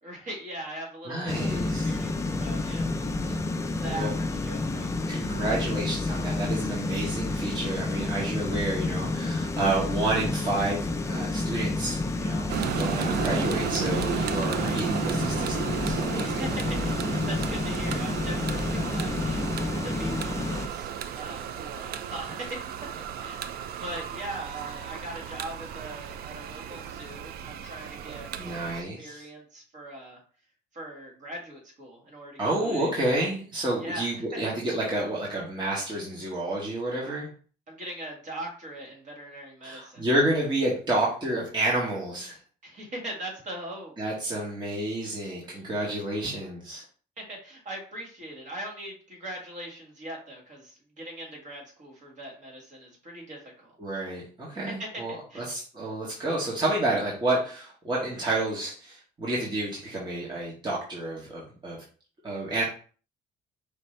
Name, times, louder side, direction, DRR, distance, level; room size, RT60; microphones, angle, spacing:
voice 1, 0.0-3.5 3.8-5.3 14.5-14.8 16.2-19.4 19.7-22.7 23.2-30.2 30.7-32.9 33.8-34.5 37.7-40.0 42.6-43.9 47.2-53.7 54.6-55.5, right 1 dB, 45° right, -2 dB, 1.9 m, -40 dB
voice 2, 1.1-1.9 3.9-4.1 5.1-12.5 12.8-16.4 28.4-29.3 32.4-37.3 39.6-42.4 44.0-46.8 53.8-61.8 62.2-62.6, right 1 dB, 25° right, -5 dB, 1.4 m, -30 dB
sound 1, 1.3-20.7, left 2 dB, 15° left, 0.5 m, -30 dB
sound 2, 12.5-28.8, right 9 dB, 65° right, 0.4 m, -34 dB
5.0 x 2.8 x 3.3 m, 0.41 s
cardioid pair, 110°, 17 cm